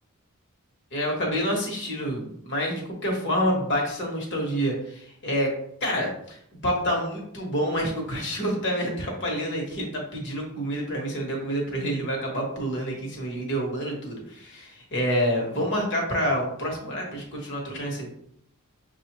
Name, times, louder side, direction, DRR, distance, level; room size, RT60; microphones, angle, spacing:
voice 1, 0.9-5.5 5.8-18.1, equal, 55° left, -1 dB, 1.3 m, -28 dB
6.3 x 2.4 x 3.0 m, 0.69 s
head